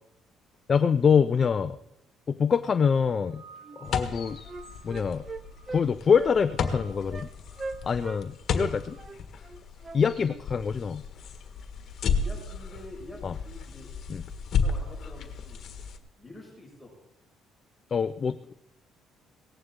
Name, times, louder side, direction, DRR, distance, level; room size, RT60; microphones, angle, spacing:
voice 1, 0.7-1.8 2.3-3.4 3.8-4.4 4.8-5.2 5.7-7.3 7.8-9.0 9.9-11.0 13.2-13.3 14.1-14.2 17.9-18.5, left 6 dB, 40° left, 11 dB, 0.5 m, -25 dB
sound 1, 3.0-5.9 6.3-7.1 7.4-9.0, right 6 dB, 75° right, 7.1 m, -54 dB
Wind instrument woodwind instrument, 3.6-3.8 4.1-5.9 6.1-6.3 6.6-6.8 7.1-7.3 7.6-8.2 8.5-10.4, right 4 dB, 25° right, 0.9 m, -40 dB
sound 2, 3.8-16.0, left 5 dB, 55° left, 1.6 m, -33 dB
voice 2, 12.2-13.9 14.5-15.6 16.2-16.9, left 1 dB, 5° left, -3 dB, 6.2 m, -46 dB
18.0 x 14.5 x 3.8 m, 0.86 s
cardioid pair, 100°, 0 cm